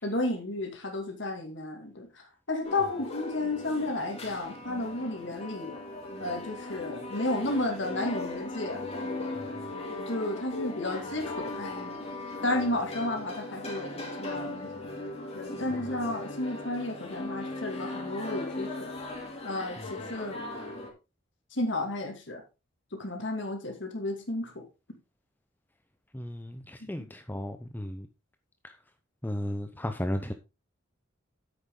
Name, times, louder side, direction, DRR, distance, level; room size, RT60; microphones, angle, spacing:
voice 1, 0.0-5.8 6.2-8.9 9.9-12.1 12.4-14.9 15.3-18.9 19.4-19.8 20.1-20.4 21.5-22.4 22.9-24.6, left 2 dB, 60° left, 2.6 m, -32 dB
sound 1, 2.6-20.9, left 2 dB, 30° left, 3.0 m, -38 dB
voice 2, 9.3-9.7 15.7-15.9 19.8-19.9 26.1-28.1 28.6-28.8 29.2-30.3, left 1 dB, 10° left, 0.6 m, -35 dB
9.9 x 8.2 x 3.8 m
head